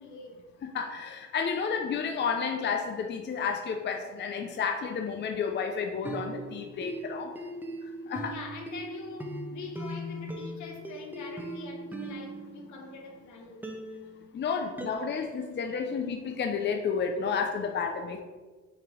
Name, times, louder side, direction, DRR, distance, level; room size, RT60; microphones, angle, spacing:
voice 1, 0.0-0.4 8.3-13.8, left 4 dB, 75° left, 3 dB, 1.1 m, -44 dB
voice 2, 0.6-7.3 8.1-8.3 14.3-18.2, left 6 dB, 35° left, 5 dB, 0.5 m, -31 dB
sound 1, 5.9-13.2 13.6-14.9, right 1 dB, 5° right, 0.8 m, -40 dB
6.6 x 2.9 x 4.9 m, 1.3 s
cardioid pair, 90°, 30 cm